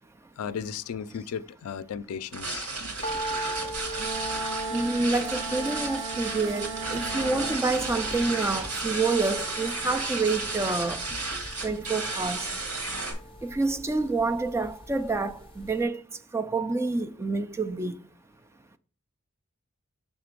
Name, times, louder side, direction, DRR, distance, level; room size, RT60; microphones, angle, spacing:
voice 1, 0.4-2.7, left 7 dB, 85° left, 0.4 m, -35 dB
sound 1, 2.3-13.1, right 3 dB, 90° right, 2.0 m, -33 dB
sound 2, 3.0-15.3 15.6-15.7, right 1 dB, 25° left, 0.8 m, -39 dB
sound 3, 3.9-7.6, right 5 dB, 55° right, 0.6 m, -37 dB
voice 2, 4.7-11.1 11.6-12.5 13.4-18.1, right 3 dB, 10° right, 0.3 m, -28 dB
5.9 x 3.7 x 5.0 m
head